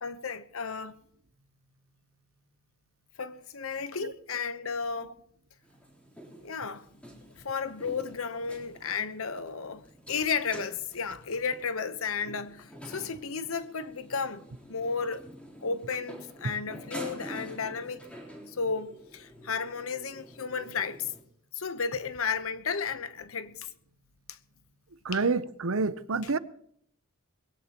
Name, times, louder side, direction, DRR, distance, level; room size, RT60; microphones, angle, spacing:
voice 1, 0.0-0.9 3.2-5.1 6.4-6.9 7.3-15.3 15.6-18.1 18.5-21.1 21.5-23.7 24.3-24.4 25.1-25.2, left 5 dB, 70° left, 1.0 m, -33 dB
sound 1, 5.6-21.2, right 1 dB, 5° left, 3.6 m, -47 dB
voice 2, 25.0-26.4, right 4 dB, 70° right, 0.8 m, -28 dB
21.5 x 17.0 x 3.0 m
head